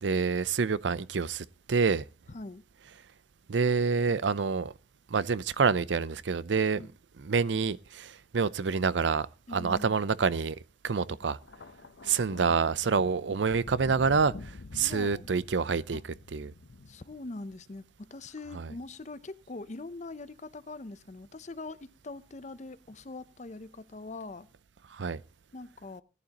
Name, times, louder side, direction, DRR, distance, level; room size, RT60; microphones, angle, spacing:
voice 1, 0.0-2.0 3.5-4.7 5.1-6.9 7.2-9.3 9.5-10.6 10.8-11.4 12.0-16.0 16.3-16.5 18.6-18.7 24.9-25.2, right 5 dB, 90° right, 0.6 m, -27 dB
voice 2, 2.3-2.6 6.8-6.9 9.5-10.0 11.1-11.2 12.5-12.6 14.8-15.3 15.9-16.0 16.9-24.5 25.5-26.0, left 2 dB, 40° left, 0.6 m, -43 dB
Thunder, 11.4-17.8 18.8-19.0, left 3 dB, 90° left, 0.8 m, -47 dB
18.5 x 11.5 x 2.9 m
head